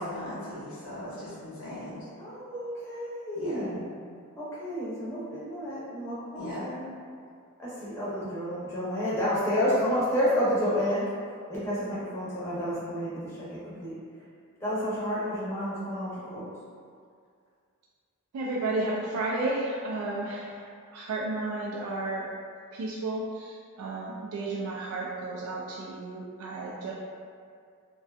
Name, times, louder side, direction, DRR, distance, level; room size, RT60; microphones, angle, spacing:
voice 1, 0.0-2.0 3.4-3.6 6.4-6.6, left 1 dB, 65° left, -10 dB, 0.8 m, -38 dB
voice 2, 2.2-3.8 4.4-6.8 7.6-11.2 11.5-14.2 14.6-16.5, equal, 10° left, -11 dB, 0.7 m, -30 dB
voice 3, 18.3-22.3 22.7-26.9, right 2 dB, 80° right, -2 dB, 0.3 m, -32 dB
2.5 x 2.2 x 2.3 m, 2.2 s
head